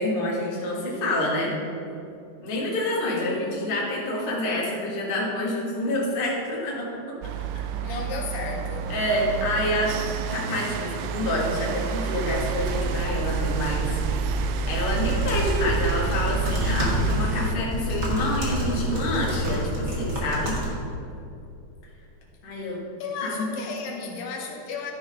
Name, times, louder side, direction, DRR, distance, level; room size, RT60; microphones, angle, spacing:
voice 1, 0.0-1.5 2.4-7.2 7.9-8.0 8.9-9.9 10.3-14.3 14.7-20.6 22.4-22.8 23.2-23.5, left 1 dB, 30° left, -4 dB, 1.0 m, -27 dB
voice 2, 3.1-4.2 7.8-8.9 23.0-24.9, left 4 dB, 70° left, 1 dB, 2.0 m, -34 dB
sound 1, 7.2-17.6, right 6 dB, 80° right, 1.8 m, -29 dB
sound 2, 12.2-20.7, right 1 dB, 40° right, 2.1 m, -28 dB
12.0 x 4.7 x 5.3 m, 2.6 s
omnidirectional pair, 3.4 m